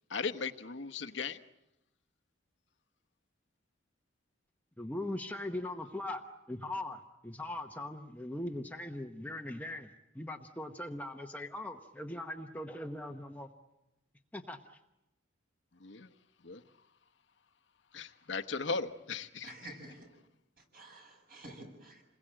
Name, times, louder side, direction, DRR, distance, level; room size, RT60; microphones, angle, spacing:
voice 1, 0.1-1.4 15.8-16.1 16.4-16.6 17.9-19.5, left 4 dB, 60° left, 7 dB, 1.1 m, -37 dB
voice 2, 4.8-13.5 14.3-14.8, left 1 dB, 10° left, 4 dB, 1.0 m, -40 dB
voice 3, 19.4-20.0 20.7-22.0, right 1 dB, 45° right, 3 dB, 7.2 m, -49 dB
28.5 x 21.5 x 8.9 m, 0.92 s
head